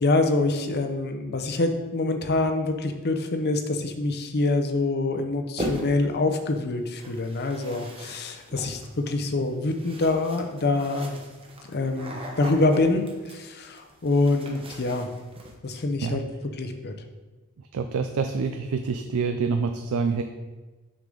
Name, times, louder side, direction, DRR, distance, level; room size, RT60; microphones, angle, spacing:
voice 1, 0.0-11.2 11.6-15.1 15.6-16.2 16.6-16.9, left 2 dB, 45° left, 6 dB, 0.7 m, -25 dB
sound 1, 5.6-6.1 7.0-15.5, equal, 25° right, 0.9 m, -39 dB
voice 2, 17.7-20.2, right 5 dB, 70° right, 7 dB, 0.4 m, -26 dB
6.5 x 6.2 x 3.9 m, 1.2 s
head